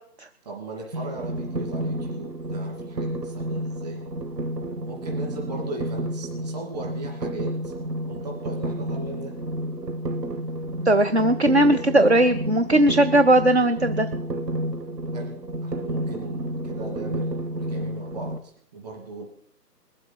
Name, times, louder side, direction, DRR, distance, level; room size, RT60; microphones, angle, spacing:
voice 1, 0.4-4.0 4.8-7.7 8.1-9.4 15.1-15.3 15.6-19.2, right 3 dB, 25° right, 0 dB, 2.7 m, -37 dB
sound 1, 0.9-18.4, right 1 dB, 75° right, 1.9 m, -31 dB
voice 2, 10.9-14.1, right 1 dB, 45° right, 9 dB, 0.5 m, -18 dB
21.5 x 7.7 x 4.5 m, 0.62 s
figure-of-eight pair, 170°, 50 cm